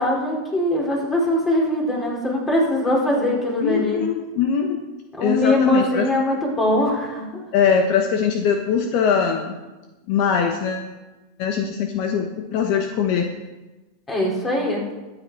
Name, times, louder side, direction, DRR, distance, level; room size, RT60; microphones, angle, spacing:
voice 1, 0.0-4.0 5.2-7.4 14.1-14.8, left 1 dB, 20° left, -2 dB, 4.2 m, -21 dB
voice 2, 3.6-4.8 5.2-6.1 7.5-9.5 10.1-10.9 11.4-13.3, left 7 dB, 55° left, 4 dB, 1.2 m, -21 dB
13.5 x 9.0 x 4.8 m, 1.1 s
hypercardioid pair, 115°, 0 cm